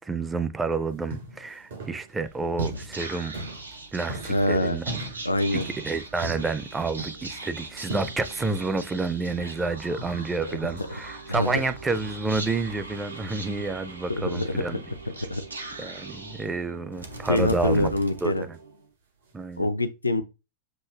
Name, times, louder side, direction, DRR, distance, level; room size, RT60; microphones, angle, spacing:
voice 1, 0.0-3.3 3.9-5.0 5.5-14.8 15.8-17.9 18.2-18.6 19.3-19.7, right 3 dB, 15° right, 0.5 m, -29 dB
sound 1, 0.9-7.3 7.9-8.3 8.6-8.9 9.3-9.6 10.0-12.7 12.9-13.5 14.2-14.3 17.4-18.6 19.2-19.7, right 1 dB, 60° right, 2.8 m, -40 dB
Whispering, 2.3-18.9, right 3 dB, 80° right, 0.7 m, -40 dB
voice 2, 4.3-4.8 5.2-5.7 10.5-10.6 11.3-11.6 14.1-14.6 15.3-15.4 17.3-18.5 19.6-20.2, left 1 dB, 80° left, 0.5 m, -25 dB
7.5 x 2.6 x 2.3 m
figure-of-eight pair, 90°, 0 cm